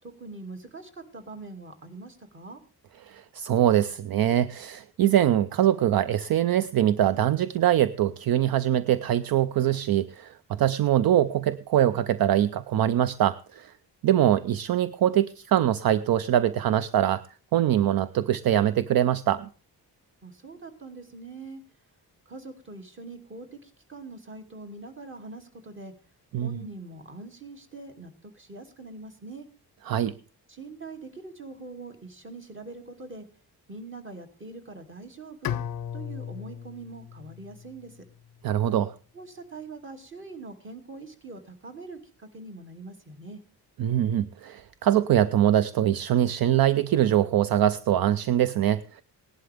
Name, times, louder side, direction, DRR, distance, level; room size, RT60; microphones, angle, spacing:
voice 1, 0.0-2.6 20.2-21.6 22.3-25.9 26.4-29.5 30.5-33.3 33.7-35.6 35.9-38.0 39.1-43.4, right 3 dB, 30° right, 5 dB, 2.5 m, -43 dB
voice 2, 3.1-13.7 14.0-17.2 17.5-19.5 26.3-26.5 29.9-30.1 38.4-38.9 43.8-49.0, right 11 dB, 65° right, 15 dB, 0.6 m, -23 dB
Bowed string instrument, 35.4-38.5, left 9 dB, 60° left, 0.5 m, -36 dB
18.0 x 11.5 x 3.5 m, 0.37 s
wide cardioid pair, 155°, 39 cm